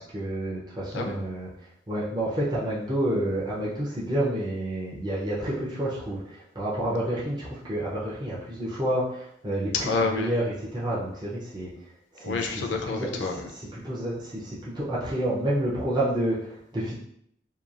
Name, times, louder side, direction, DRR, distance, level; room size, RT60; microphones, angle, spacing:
voice 1, 0.0-1.5 1.9-9.7 10.1-11.7 12.1-12.4 12.9-13.1 13.7-16.9, right 1 dB, 25° right, -7 dB, 0.6 m, -29 dB
voice 2, 9.7-10.3 12.2-13.5, left 4 dB, 80° left, 2 dB, 0.5 m, -28 dB
2.9 x 2.3 x 2.4 m, 0.71 s
head